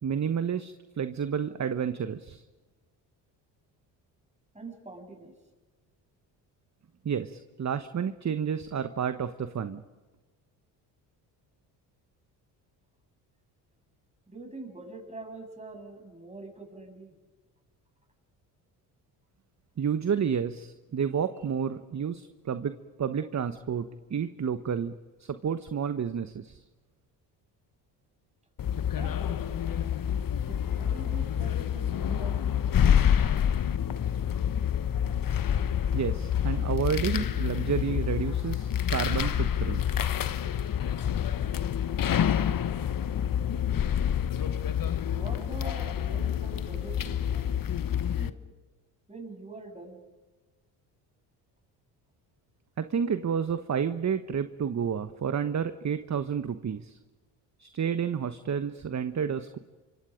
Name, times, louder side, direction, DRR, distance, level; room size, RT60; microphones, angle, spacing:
voice 1, 0.0-2.4 7.0-9.8 19.8-24.9 25.2-26.6 35.9-39.8 52.8-57.0 57.6-59.6, right 7 dB, 35° right, 10 dB, 1.2 m, -30 dB
voice 2, 4.5-5.3 14.3-17.1 28.9-30.0 30.4-32.9 45.1-47.4 48.1-48.3 49.1-50.0, right 2 dB, 15° right, 3 dB, 7.6 m, -44 dB
sound 1, 28.6-48.3, left 9 dB, 45° left, 1.2 m, -28 dB
28.0 x 25.0 x 5.2 m, 1.3 s
hypercardioid pair, 55°, 48 cm